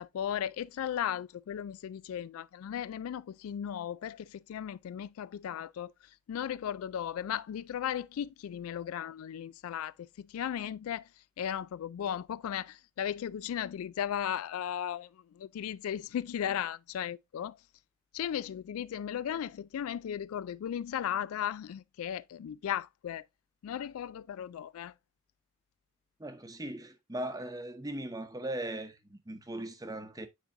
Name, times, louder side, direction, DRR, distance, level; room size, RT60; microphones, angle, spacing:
voice 1, 0.0-5.9 6.3-11.1 11.4-17.6 18.1-23.3 23.6-24.9, left 9 dB, 80° left, 0.3 m, -36 dB
voice 2, 26.2-30.3, right 1 dB, 15° right, 0.8 m, -39 dB
9.3 x 3.9 x 2.7 m
head